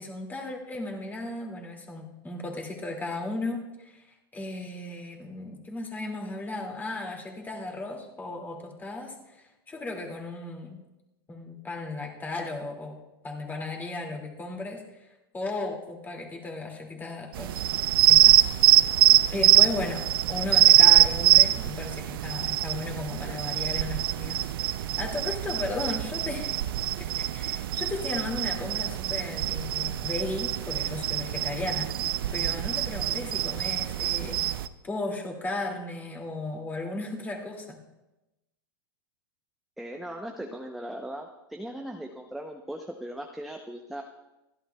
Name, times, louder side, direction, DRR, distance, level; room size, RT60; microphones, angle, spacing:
voice 1, 0.0-10.8 11.3-13.0 13.2-15.1 15.3-17.6 18.1-18.5 19.3-26.6 27.0-31.9 32.3-34.4 34.8-37.8, left 2 dB, 15° left, 1 dB, 2.3 m, -35 dB
sound 1, 17.4-34.7, right 14 dB, 70° right, 0.6 m, -23 dB
voice 2, 39.8-44.0, right 1 dB, ahead, 2 dB, 0.7 m, -38 dB
28.5 x 11.0 x 2.3 m, 0.98 s
supercardioid pair, 135°, 12 cm